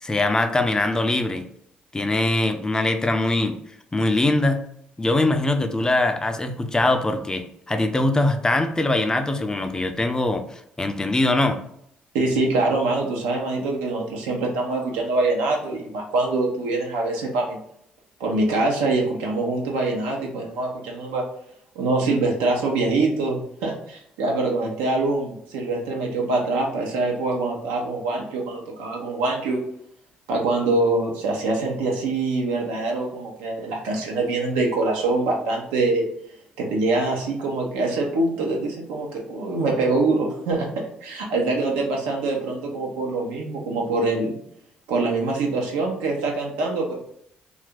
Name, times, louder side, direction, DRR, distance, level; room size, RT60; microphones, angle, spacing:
voice 1, 0.0-1.5 1.9-3.6 3.9-4.6 5.0-11.6, left 2 dB, 20° left, 7 dB, 0.5 m, -22 dB
voice 2, 12.1-17.6 18.2-21.2 21.7-29.6 30.3-36.1 36.6-40.7 41.0-44.3 44.9-46.9, right 2 dB, 90° right, 0 dB, 0.7 m, -24 dB
2.9 x 2.4 x 3.4 m, 0.71 s
supercardioid pair, 60°, 4 cm